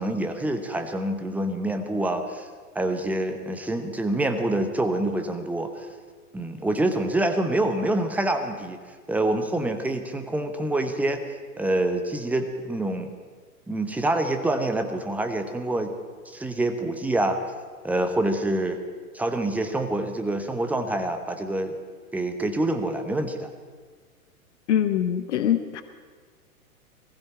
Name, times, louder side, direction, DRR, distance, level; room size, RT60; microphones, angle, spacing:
voice 1, 0.0-2.5 2.7-5.9 6.3-8.8 9.1-11.2 11.6-13.1 13.7-16.0 16.3-17.4 17.8-18.8 19.1-21.8 22.1-23.5, right 1 dB, 5° right, 6 dB, 1.0 m, -26 dB
voice 2, 24.7-25.8, left 10 dB, 50° left, 10 dB, 1.1 m, -23 dB
20.0 x 15.5 x 4.4 m, 1.5 s
figure-of-eight pair, 105°, 44 cm